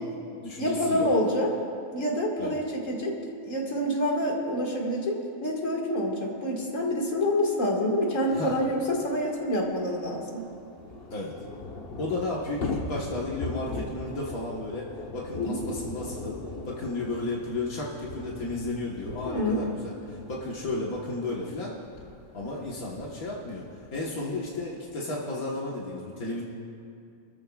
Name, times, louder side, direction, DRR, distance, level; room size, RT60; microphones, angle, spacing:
voice 1, 0.0-1.1 2.4-2.6 8.3-8.6 11.1-11.3 12.0-21.8 22.3-23.7 23.9-26.4, left 2 dB, 85° left, -4 dB, 1.9 m, -33 dB
voice 2, 0.6-1.5 1.9-3.1 3.4-5.1 5.4-10.4 15.3-15.6 19.3-19.6, left 1 dB, 65° left, -2 dB, 2.4 m, -27 dB
Thunder / Rain, 8.3-8.4 8.6-8.7 9.0-24.9, left 3 dB, 45° left, 1.3 m, -41 dB
27.5 x 14.0 x 2.4 m, 2.5 s
omnidirectional pair, 1.5 m